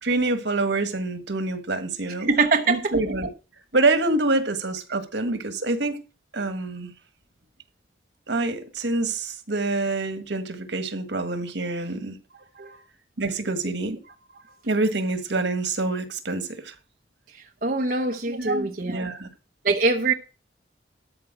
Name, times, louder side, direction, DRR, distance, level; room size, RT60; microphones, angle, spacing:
voice 1, 0.0-2.3 2.7-3.3 3.7-6.0 6.3-6.9 8.3-12.2 13.2-14.0 14.6-16.7 18.3-19.3, right 2 dB, 85° right, 9 dB, 1.7 m, -26 dB
voice 2, 2.2-2.9 12.3-12.8 13.8-14.0 17.6-19.0 19.6-20.1, right 3 dB, 50° right, 3 dB, 0.9 m, -24 dB
13.0 x 4.4 x 7.3 m, 0.33 s
head